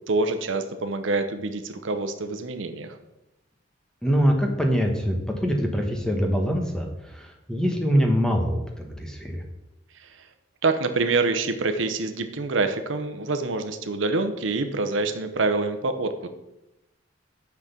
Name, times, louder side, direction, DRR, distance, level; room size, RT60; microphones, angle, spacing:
voice 1, 0.1-3.0 10.0-10.3 10.6-16.3, right 3 dB, 75° right, 8 dB, 0.8 m, -26 dB
voice 2, 4.0-9.4, equal, 5° left, 2 dB, 1.1 m, -24 dB
6.0 x 6.0 x 6.8 m, 0.94 s
head